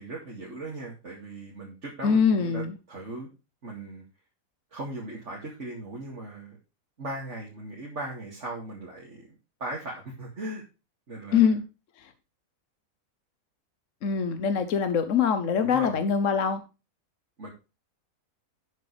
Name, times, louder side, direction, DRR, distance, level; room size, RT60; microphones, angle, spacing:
voice 1, 0.0-3.3 3.6-4.0 4.7-6.6 7.0-10.6 11.1-11.5 15.6-16.0 17.4-17.5, right 2 dB, 50° right, -3 dB, 2.7 m, -38 dB
voice 2, 2.0-2.7 11.3-11.6 12.0-12.1 14.0-16.6, left 6 dB, 60° left, 9 dB, 1.2 m, -23 dB
12.5 x 7.8 x 3.3 m, 0.30 s
omnidirectional pair, 1.6 m